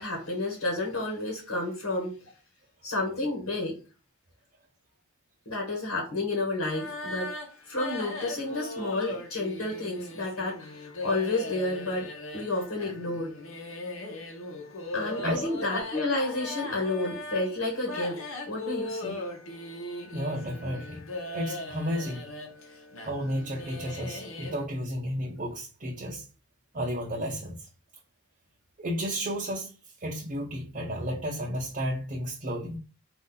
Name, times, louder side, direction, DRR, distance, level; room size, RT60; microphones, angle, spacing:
voice 1, 0.0-2.2 2.8-3.8 5.5-7.3 7.7-13.3 14.9-18.2 18.5-19.2, left 2 dB, 80° left, 1.3 m, -30 dB
sound 1, 6.7-24.7, left 2 dB, 60° left, 0.9 m, -39 dB
voice 2, 20.1-21.0 21.3-22.2 23.1-26.3 26.7-27.7 28.8-29.7 30.0-32.8, equal, 35° right, 0.7 m, -32 dB
4.3 x 2.6 x 3.8 m
head